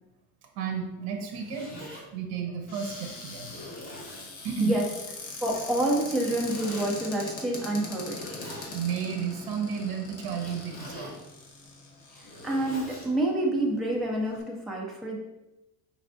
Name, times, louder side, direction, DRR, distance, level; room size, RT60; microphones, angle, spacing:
voice 1, 0.5-1.8 2.1-3.6 4.4-4.7 8.7-11.1, right 6 dB, 70° right, 3 dB, 0.8 m, -32 dB
Zipper (clothing), 1.1-2.0 2.7-2.8 3.4-4.3 6.1-6.9 7.9-8.8 10.3-11.2 12.0-13.1, left 1 dB, 20° left, 1.1 m, -43 dB
Cupboard open or close, 2.7-13.0 13.7-13.8 14.1-14.4, left 3 dB, 65° left, 1.2 m, -42 dB
voice 2, 5.4-8.3 12.1-15.2, right 1 dB, ahead, -3 dB, 0.4 m, -28 dB
5.2 x 3.2 x 2.6 m, 0.98 s
cardioid pair, 160°, 39 cm